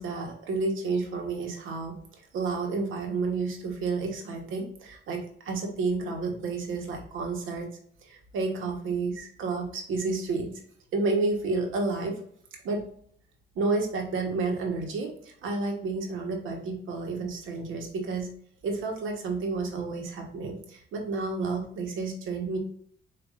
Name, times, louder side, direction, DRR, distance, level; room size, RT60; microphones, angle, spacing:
voice 1, 0.0-7.7 8.0-10.5 10.9-12.2 12.5-12.8 13.5-18.3 18.6-22.6, right 3 dB, 85° right, 2 dB, 1.2 m, -30 dB
7.5 x 2.6 x 2.5 m, 0.62 s
cardioid pair, 90°, 20 cm